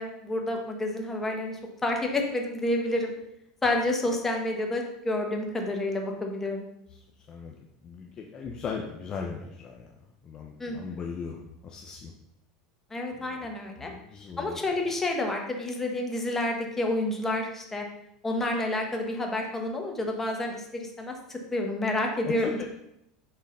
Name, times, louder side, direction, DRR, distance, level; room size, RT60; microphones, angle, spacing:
voice 1, 0.0-3.1 3.6-6.6 10.6-10.9 12.9-13.9 14.4-17.8 18.2-22.6, left 1 dB, 15° left, 1 dB, 1.5 m, -29 dB
voice 2, 7.8-9.9 10.2-12.1 13.1-13.4 13.8-14.6 22.4-22.6, left 5 dB, 35° left, 1 dB, 0.8 m, -38 dB
6.5 x 3.9 x 5.5 m, 0.80 s
supercardioid pair, 110°, 2 cm